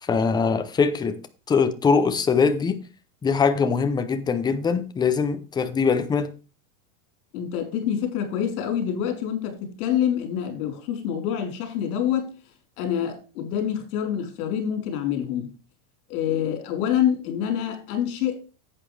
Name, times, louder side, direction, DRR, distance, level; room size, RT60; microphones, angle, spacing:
voice 1, 0.0-1.2 1.5-2.8 3.2-6.3, left 5 dB, 10° left, 0.6 m, -22 dB
voice 2, 7.3-12.3 12.8-15.5 16.1-18.4, left 9 dB, 65° left, 4.3 m, -26 dB
11.0 x 8.6 x 3.3 m
supercardioid pair, 155°, 45 cm